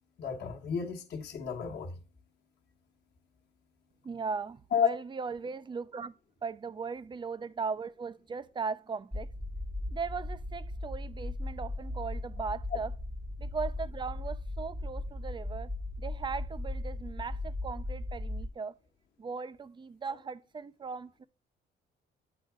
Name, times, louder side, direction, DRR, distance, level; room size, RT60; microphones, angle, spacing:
voice 1, 0.2-1.9 4.7-4.9 12.7-12.8, left 7 dB, 55° left, 1.2 m, -31 dB
voice 2, 4.0-6.1 6.4-9.3 9.9-12.9 13.4-15.7 16.0-18.8 19.2-21.2, right 5 dB, 25° right, 0.4 m, -38 dB
sound 1, 9.1-18.5, left 1 dB, ahead, 0.7 m, -37 dB
8.2 x 4.0 x 4.7 m
cardioid pair, 90°, 20 cm